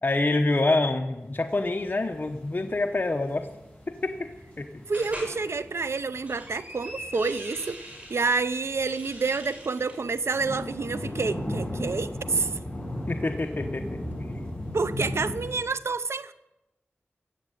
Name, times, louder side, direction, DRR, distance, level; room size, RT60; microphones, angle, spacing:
voice 1, 0.0-3.5 3.9-4.3 4.6-4.7 13.1-14.0, left 2 dB, 45° left, 0.9 m, -26 dB
sound 1, 1.3-15.6, left 1 dB, 25° left, 7.2 m, -38 dB
sound 2, 4.9-5.4 6.0-8.2 8.7-10.0, right 1 dB, 30° right, 6.2 m, -42 dB
voice 2, 4.9-7.8 8.1-12.6 14.7-16.3, right 4 dB, 80° right, 0.7 m, -28 dB
16.0 x 7.3 x 9.3 m
wide cardioid pair, 50°, 4 cm